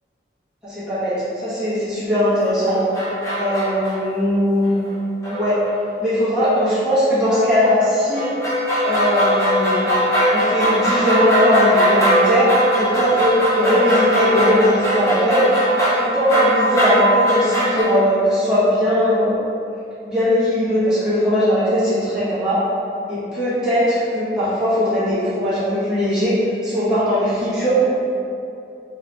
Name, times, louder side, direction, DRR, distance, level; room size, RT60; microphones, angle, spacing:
voice 1, 0.6-2.8 3.4-4.7 5.3-5.6 6.0-8.3 8.8-9.9 10.3-15.4 16.0-19.3 20.0-22.6 23.1-27.9, equal, 5° right, -13 dB, 1.4 m, -19 dB
sound 1, 2.5-3.9 4.9-5.0 5.2-5.7 6.4-6.7 7.3-17.8, equal, 15° left, 1.0 m, -20 dB
4.6 x 2.8 x 3.4 m, 2.6 s
head